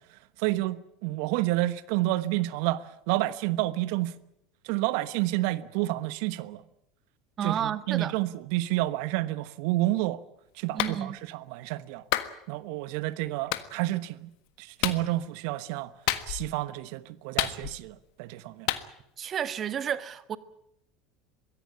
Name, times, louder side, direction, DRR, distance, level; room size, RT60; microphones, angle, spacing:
voice 1, 0.4-4.1 4.6-6.6 7.4-10.2 10.6-12.0 12.5-14.3 14.6-15.9 16.3-18.7, right 17 dB, 65° right, 1.1 m, -29 dB
voice 2, 7.4-8.2 10.7-11.2 19.2-20.4, right 9 dB, 40° right, 1.5 m, -31 dB
Clapping, 10.8-11.0 12.1-12.3 13.5-13.7 14.8-15.0 16.1-16.5 17.4-17.9 18.7-18.8, left 16 dB, 65° left, 1.5 m, -29 dB
23.0 x 16.5 x 10.0 m
hypercardioid pair, 75°, 0 cm